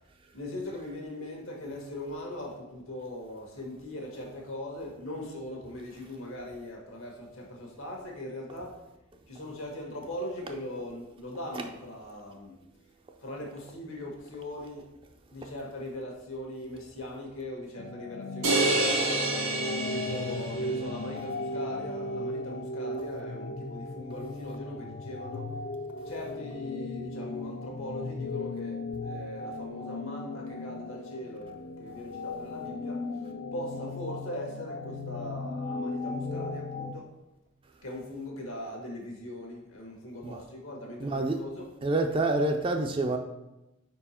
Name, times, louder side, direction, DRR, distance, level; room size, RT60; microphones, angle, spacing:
voice 1, 0.3-8.8 9.3-12.6 13.2-14.9 15.3-19.3 19.9-25.5 26.0-33.1 33.5-37.1 37.8-41.7, left 1 dB, 75° left, 1.4 m, -40 dB
sound 1, 17.8-37.0, left 2 dB, 45° left, 0.4 m, -36 dB
sound 2, 18.4-20.8, right 2 dB, 80° right, 1.6 m, -28 dB
voice 2, 41.0-41.4 41.8-43.2, right 2 dB, 25° right, 0.4 m, -27 dB
4.9 x 4.5 x 4.3 m
head